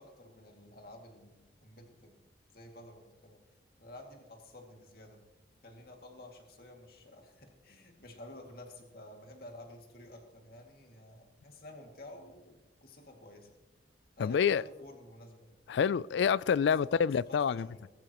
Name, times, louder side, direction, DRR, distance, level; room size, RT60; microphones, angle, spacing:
voice 1, 0.0-2.3 2.5-3.4 3.8-5.2 5.6-13.6 14.2-15.5 16.8-17.9, left 1 dB, 50° left, 2.3 m, -52 dB
voice 2, 14.2-14.6 15.7-17.7, left 7 dB, 75° left, 0.3 m, -27 dB
20.0 x 13.5 x 3.0 m
head